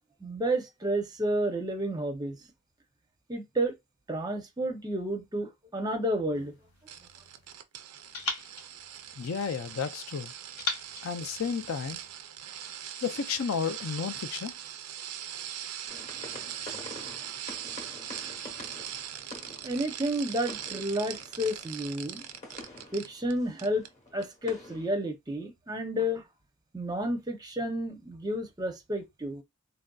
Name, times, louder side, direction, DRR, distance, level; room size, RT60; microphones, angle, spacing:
voice 1, 0.2-2.4 3.3-3.7 4.1-6.5 19.6-22.2 22.9-23.8 24.1-26.2 26.7-29.4, equal, 15° right, 0.5 m, -31 dB
sound 1, 6.3-7.6 8.1-9.8 10.6-12.2, left 3 dB, 90° left, 0.9 m, -40 dB
sound 2, 6.9-23.3 23.6-23.9 24.2-24.3, right 10 dB, 90° right, 0.4 m, -41 dB
voice 2, 9.2-10.3 11.0-12.0 13.0-14.5, left 6 dB, 65° left, 0.4 m, -32 dB
sound 3, 15.9-25.0, left 1 dB, 30° left, 1.0 m, -48 dB
3.2 x 2.5 x 2.3 m
head